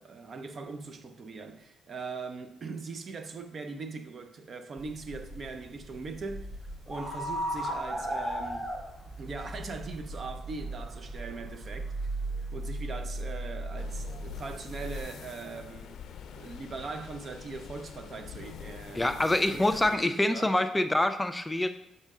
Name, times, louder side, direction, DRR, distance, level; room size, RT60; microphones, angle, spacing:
voice 1, 0.0-6.5 6.9-8.7 9.2-11.9 12.5-16.0 16.3-19.1 19.5-20.5, right 4 dB, 45° right, 0.6 m, -41 dB
sound 1, 4.8-15.0, right 1 dB, 10° right, 2.7 m, -37 dB
sound 2, 13.8-20.0, left 8 dB, 70° left, 0.5 m, -45 dB
voice 2, 18.9-21.7, left 1 dB, 10° left, 0.4 m, -26 dB
6.5 x 5.4 x 3.6 m
cardioid pair, 90°, 0 cm